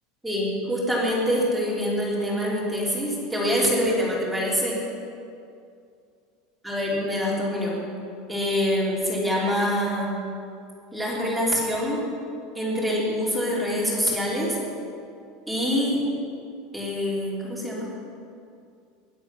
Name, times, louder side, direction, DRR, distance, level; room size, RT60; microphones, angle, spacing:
voice 1, 0.2-4.8 6.6-7.8 8.3-10.2 10.9-12.0 12.5-14.6 15.5-16.0 16.7-17.9, equal, ahead, -6 dB, 3.2 m, -25 dB
21.5 x 8.6 x 5.9 m, 2.5 s
supercardioid pair, 175°, 0 cm